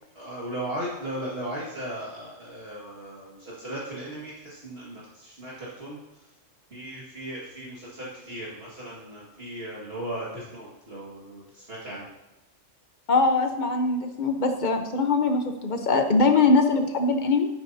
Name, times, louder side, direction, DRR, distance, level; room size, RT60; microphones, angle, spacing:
voice 1, 0.1-6.0 6.7-12.1, right 1 dB, 50° right, -7 dB, 2.2 m, -37 dB
voice 2, 13.1-17.5, left 3 dB, 40° left, 6 dB, 1.0 m, -22 dB
12.0 x 9.3 x 2.8 m, 0.98 s
omnidirectional pair, 1.3 m